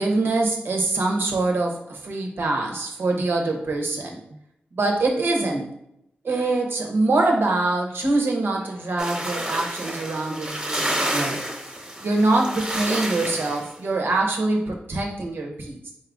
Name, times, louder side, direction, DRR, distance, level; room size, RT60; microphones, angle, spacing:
voice 1, 0.0-4.2 4.7-5.7 6.2-11.4 12.0-15.9, right 2 dB, 80° right, 1 dB, 0.7 m, -24 dB
sound 1, 9.0-13.7, right 1 dB, 20° right, 0.9 m, -29 dB
4.3 x 2.4 x 3.5 m, 0.79 s
wide cardioid pair, 65°, 4 cm